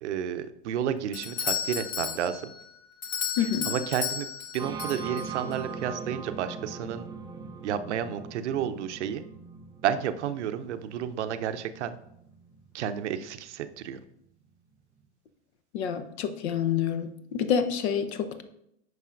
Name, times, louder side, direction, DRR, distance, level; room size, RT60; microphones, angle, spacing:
voice 1, 0.0-2.5 3.7-7.1 7.6-9.2 9.8-12.0 12.7-14.0, right 9 dB, 70° right, 11 dB, 0.6 m, -31 dB
Doorbell, 1.1-5.6, left 7 dB, 30° left, 0.9 m, -34 dB
voice 2, 3.4-3.7 15.7-18.4, left 8 dB, 65° left, 10 dB, 0.9 m, -28 dB
sound 1, 4.6-14.2, right 5 dB, 10° right, 0.4 m, -41 dB
9.2 x 5.5 x 2.5 m, 0.76 s
hypercardioid pair, 100°, 36 cm